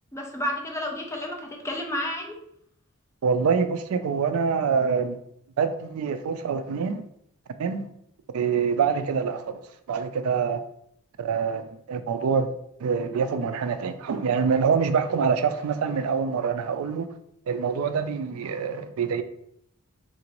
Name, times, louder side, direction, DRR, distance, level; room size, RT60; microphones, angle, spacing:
voice 1, 0.1-2.4, left 1 dB, 15° left, 0.5 m, -31 dB
voice 2, 3.2-5.2 5.6-7.0 7.6-7.9 8.3-9.6 9.9-10.6 11.2-12.5 12.8-17.1 17.5-19.2, right 6 dB, 70° right, 0.3 m, -25 dB
3.7 x 2.5 x 2.9 m
head